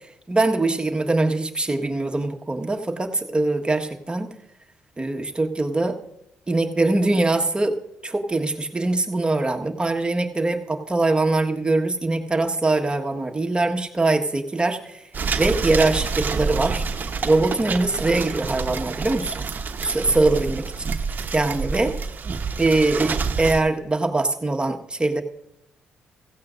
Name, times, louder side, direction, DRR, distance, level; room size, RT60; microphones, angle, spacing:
voice 1, 0.3-4.3 5.0-6.0 6.5-7.8 8.0-15.0 15.4-16.8 17.2-19.4 19.8-20.6 21.3-22.0 22.6-25.2, right 2 dB, 20° right, 3 dB, 1.5 m, -22 dB
sound 1, 15.1-23.6, right 5 dB, 45° right, 1.1 m, -28 dB
16.0 x 15.5 x 2.6 m, 0.85 s
hypercardioid pair, 55°, 4 cm